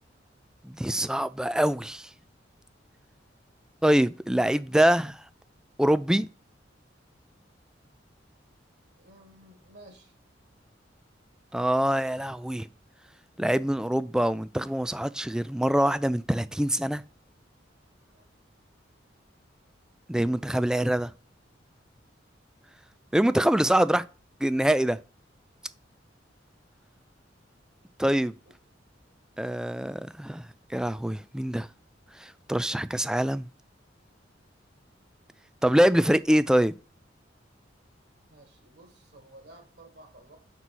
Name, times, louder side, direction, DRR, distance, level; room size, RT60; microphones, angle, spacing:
voice 1, 0.6-2.1 3.8-5.2 5.8-6.3 11.5-12.7 13.4-17.0 20.1-21.1 23.1-24.0 24.4-25.0 28.0-28.3 29.4-30.4 30.7-31.7 32.2-33.5 35.6-36.7, right 1 dB, 5° right, 0.3 m, -24 dB
voice 2, 9.0-10.1 18.1-18.2 38.3-40.4, right 1 dB, 60° right, 2.1 m, -53 dB
6.2 x 4.1 x 6.0 m
head